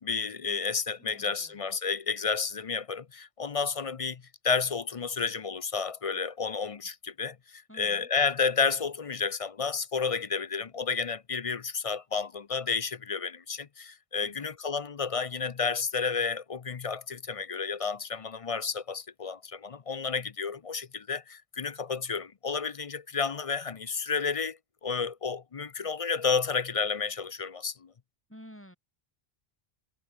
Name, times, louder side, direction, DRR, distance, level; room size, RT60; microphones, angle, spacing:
voice 1, 0.0-27.9, left 5 dB, 40° left, 0.6 m, -31 dB
voice 2, 1.0-1.7 7.7-8.1 14.2-14.5 28.3-28.8, equal, 10° left, 5.2 m, -51 dB
omnidirectional pair, 1.1 m